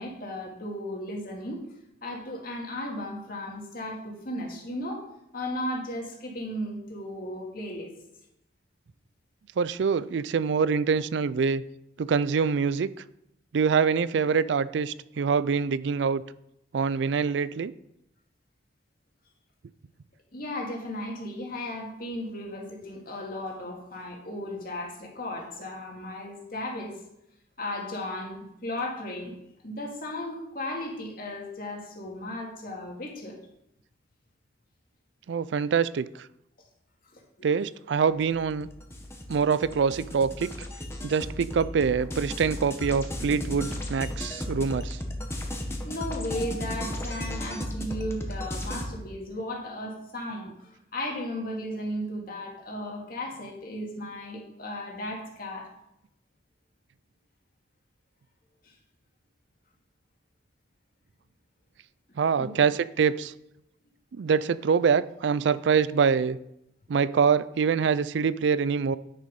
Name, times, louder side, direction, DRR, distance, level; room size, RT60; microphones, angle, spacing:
voice 1, 0.0-1.6 2.0-5.0 5.3-7.9 20.3-27.0 27.6-29.3 29.6-33.4 37.1-37.5 44.6-44.7 45.6-55.7 62.4-62.6, left 1 dB, 50° left, 0 dB, 2.2 m, -35 dB
voice 2, 9.6-11.6 12.0-12.9 13.5-16.2 16.7-17.7 35.3-36.1 37.4-38.7 39.3-40.5 41.0-45.0 62.2-63.3 64.1-66.4 66.9-69.0, right 6 dB, 75° right, 17 dB, 0.4 m, -25 dB
sound 1, 38.2-48.9, left 1 dB, 15° left, 1.2 m, -35 dB
9.6 x 6.7 x 5.3 m, 0.81 s
head